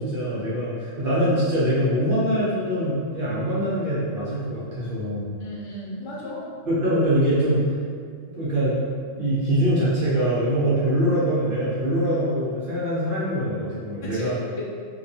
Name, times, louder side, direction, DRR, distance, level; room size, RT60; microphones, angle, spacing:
voice 1, 0.0-5.3 6.7-7.6 8.4-8.8 9.2-14.3, equal, 60° right, -10 dB, 0.6 m, -23 dB
voice 2, 5.4-6.5 14.0-14.6, left 1 dB, 70° left, -6 dB, 0.9 m, -35 dB
2.3 x 2.2 x 2.6 m, 2.1 s
omnidirectional pair, 1.3 m